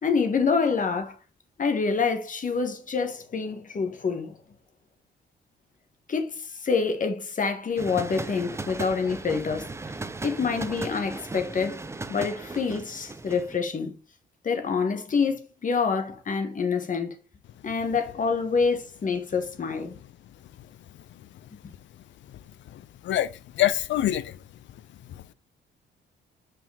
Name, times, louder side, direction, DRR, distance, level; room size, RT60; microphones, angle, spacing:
voice 1, 0.0-1.1 1.6-4.3 6.1-9.7 10.2-11.8 12.1-14.0 14.4-17.1 17.6-20.0, left 5 dB, 40° left, 1.4 m, -27 dB
sound 1, 7.8-13.6, right 3 dB, 15° right, 0.5 m, -37 dB
voice 2, 22.7-24.4 25.1-25.3, left 13 dB, 70° left, 0.5 m, -27 dB
5.7 x 5.0 x 3.4 m
cardioid pair, 90°, 20 cm